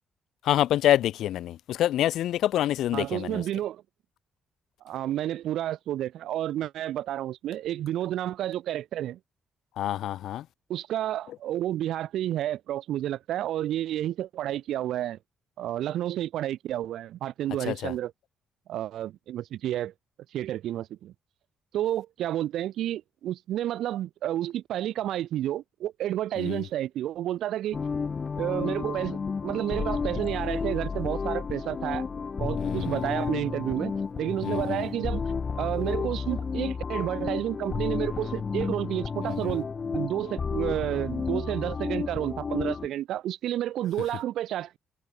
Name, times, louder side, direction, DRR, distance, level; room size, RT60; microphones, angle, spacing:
voice 1, 0.4-3.4 9.8-10.4 17.7-17.9 26.4-26.6 32.6-33.1 34.4-34.9 39.3-39.6, left 12 dB, 80° left, 2.2 m, -27 dB
voice 2, 2.9-3.8 4.8-9.2 10.7-15.2 15.6-18.1 18.7-19.9 20.3-21.1 21.7-27.8 28.4-32.0 32.4-35.3 35.5-44.8, right 12 dB, 80° right, 3.5 m, -30 dB
sound 1, 27.7-42.9, left 5 dB, 40° left, 4.3 m, -31 dB
cardioid pair, 90°, 0 cm